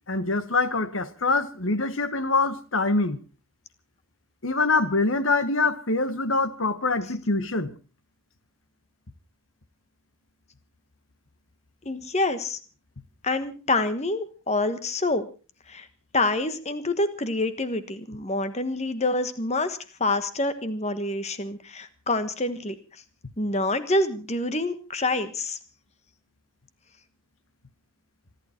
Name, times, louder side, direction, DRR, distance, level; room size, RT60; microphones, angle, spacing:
voice 1, 0.1-3.2 4.4-7.7, left 3 dB, 65° left, 1.4 m, -24 dB
voice 2, 11.8-12.6 13.2-15.3 15.7-15.9 16.1-22.8 23.4-25.6, left 2 dB, 30° left, 1.3 m, -27 dB
26.5 x 11.5 x 4.4 m
head